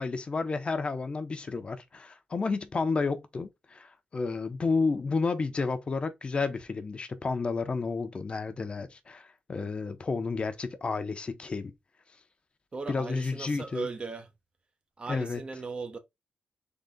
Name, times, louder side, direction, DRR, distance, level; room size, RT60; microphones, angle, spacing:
voice 1, 0.0-11.7 12.9-13.9 15.1-15.4, left 4 dB, 40° left, 0.8 m, -31 dB
voice 2, 12.7-14.3 15.0-16.0, right 4 dB, 40° right, 0.9 m, -37 dB
4.0 x 3.6 x 3.7 m
cardioid pair, 85°, 3 cm